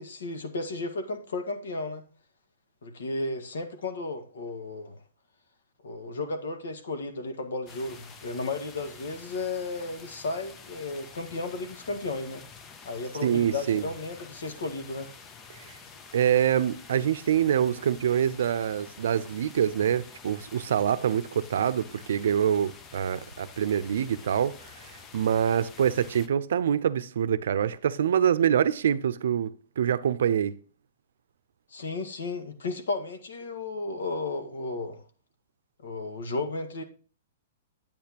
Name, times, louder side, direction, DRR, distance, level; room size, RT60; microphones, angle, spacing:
voice 1, 0.0-2.0 2.8-5.0 5.8-12.4 12.8-15.1 31.7-35.0 35.8-36.8, left 3 dB, 90° left, 1.6 m, -34 dB
sound 1, 7.7-26.3, left 5 dB, 15° left, 0.6 m, -48 dB
voice 2, 13.2-13.9 16.1-30.5, right 9 dB, 70° right, 0.6 m, -25 dB
8.7 x 8.6 x 2.9 m
hypercardioid pair, 165°, 0 cm